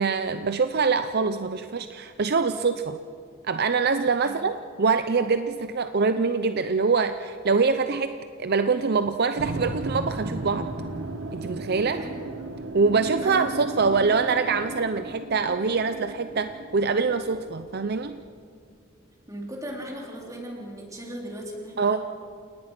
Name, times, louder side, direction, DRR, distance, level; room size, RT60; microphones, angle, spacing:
voice 1, 0.0-3.0 3.4-10.7 11.3-12.0 12.7-18.2 21.8-22.0, right 4 dB, 50° right, 10 dB, 0.6 m, -24 dB
sound 1, 9.3-18.3, right 2 dB, 85° right, 1.5 m, -36 dB
voice 2, 11.9-12.2 13.2-13.4 19.3-22.0, equal, 15° right, -1 dB, 4.1 m, -37 dB
29.0 x 18.5 x 6.0 m, 2.3 s
head